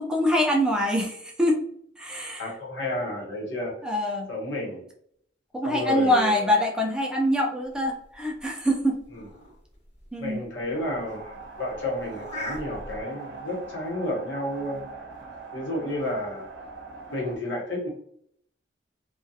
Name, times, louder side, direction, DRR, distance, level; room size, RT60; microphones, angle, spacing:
voice 1, 0.0-1.6 2.0-2.5 3.8-4.3 5.5-8.9 10.1-10.4, left 1 dB, 5° right, 0 dB, 0.3 m, -24 dB
voice 2, 2.4-3.8 4.3-4.8 5.6-6.5 9.1-9.3 10.2-14.9 15.5-16.5 17.1-17.9, left 1 dB, 80° left, -2 dB, 0.9 m, -31 dB
sound 1, 7.7-13.0, equal, 35° left, 0.9 m, -42 dB
sound 2, 10.7-17.4, right 4 dB, 80° right, 0.6 m, -42 dB
2.3 x 2.2 x 2.6 m, 0.68 s
head